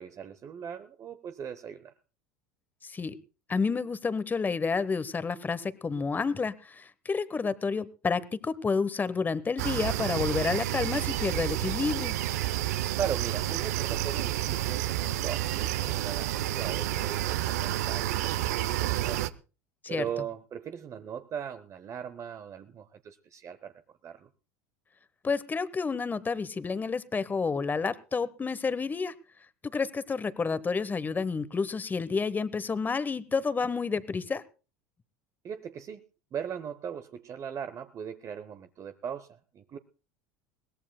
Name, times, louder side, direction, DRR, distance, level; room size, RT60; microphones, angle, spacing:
voice 1, 0.0-1.9 13.0-19.2 19.9-23.7 24.0-24.3 35.4-36.0 36.3-39.8, right 8 dB, 40° right, 10 dB, 0.8 m, -39 dB
voice 2, 2.8-3.2 3.5-12.1 19.8-20.0 25.2-29.1 29.6-34.4, left 4 dB, 20° left, 16 dB, 0.9 m, -30 dB
sound 1, 9.6-19.3, right 14 dB, 80° right, 0.6 m, -30 dB
21.5 x 17.5 x 2.2 m, 0.34 s
hypercardioid pair, 85°, 9 cm